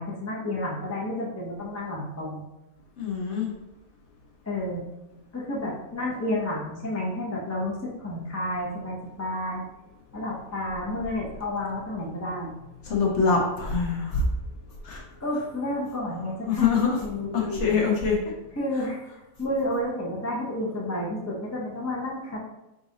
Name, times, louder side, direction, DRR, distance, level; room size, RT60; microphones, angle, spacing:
voice 1, 0.0-2.4 4.4-4.8 5.3-9.6 10.1-12.5 15.2-17.9 18.5-19.0 19.4-22.4, left 1 dB, 20° left, -4 dB, 0.4 m, -31 dB
voice 2, 3.0-3.5 12.8-14.3 14.8-15.0 16.5-17.0 17.3-18.2, left 5 dB, 55° left, -1 dB, 0.9 m, -24 dB
3.9 x 2.5 x 3.9 m, 0.96 s
omnidirectional pair, 1.6 m